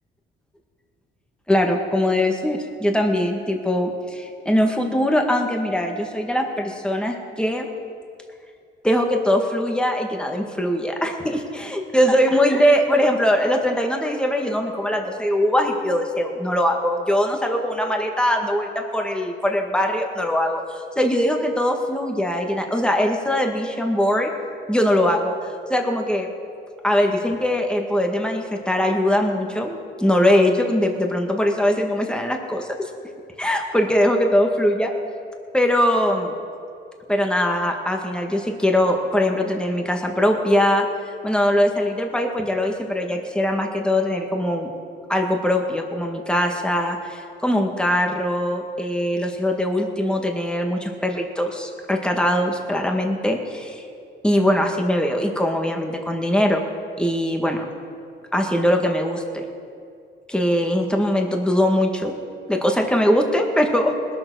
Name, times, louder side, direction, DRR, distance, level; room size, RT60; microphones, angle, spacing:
voice 1, 1.5-7.7 8.8-24.3 24.7-25.3 25.7-26.3 26.8-32.9 33.4-34.9 35.5-36.3 37.1-40.8 41.2-44.7 45.1-53.8 54.2-56.6 57.0-57.6 58.3-59.4 60.3-62.2 62.5-63.9, left 1 dB, 5° left, 2 dB, 1.8 m, -21 dB
20.0 x 6.9 x 6.3 m, 2.4 s
cardioid pair, 90°, 20 cm